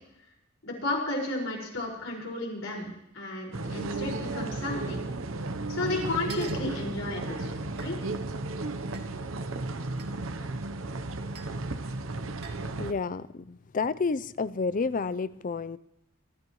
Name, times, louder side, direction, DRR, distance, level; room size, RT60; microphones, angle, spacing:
voice 1, 0.6-2.9 3.1-5.1 5.7-7.5 7.8-8.0, left 2 dB, 75° left, -2 dB, 5.2 m, -33 dB
sound 1, 3.5-12.9, right 2 dB, 70° right, 0.8 m, -34 dB
sound 2, 6.3-6.7 7.8-7.9 8.9-9.0 10.0-10.1 11.3-11.5 12.4-12.7, right 6 dB, 55° right, 1.9 m, -45 dB
voice 2, 12.8-15.8, left 4 dB, 40° left, 17 dB, 0.5 m, -30 dB
23.0 x 13.5 x 3.1 m, 0.85 s
head